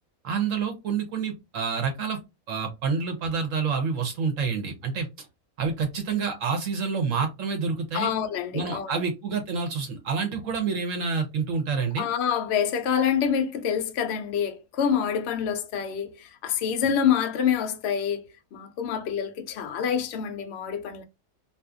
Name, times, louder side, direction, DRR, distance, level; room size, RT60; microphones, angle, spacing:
voice 1, 0.2-2.2 2.5-5.3 5.6-8.1 8.5-12.1, right 5 dB, 65° right, 1.0 m, -28 dB
voice 2, 7.9-9.0 12.0-21.0, left 8 dB, 65° left, 0.7 m, -27 dB
2.6 x 2.4 x 2.3 m
omnidirectional pair, 1.5 m